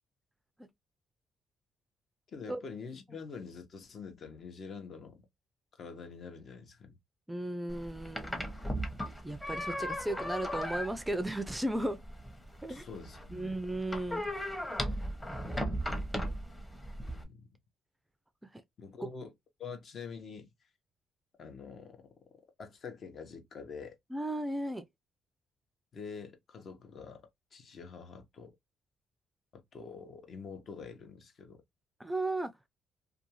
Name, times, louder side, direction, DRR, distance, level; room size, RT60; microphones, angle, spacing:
voice 1, 2.3-5.2 5.8-7.0 12.7-13.6 17.0-17.5 18.8-19.3 19.6-20.5 21.4-22.1 22.6-24.0 25.9-28.5 29.5-31.6, left 5 dB, 55° left, 0.8 m, -46 dB
voice 2, 7.3-8.4 9.2-12.0 12.6-12.8 13.3-14.5 24.1-24.8 32.0-32.5, right 1 dB, 10° right, 0.4 m, -35 dB
sound 1, 7.7-17.2, equal, 15° left, 0.8 m, -37 dB
2.5 x 2.3 x 2.9 m
cardioid pair, 90°, 0 cm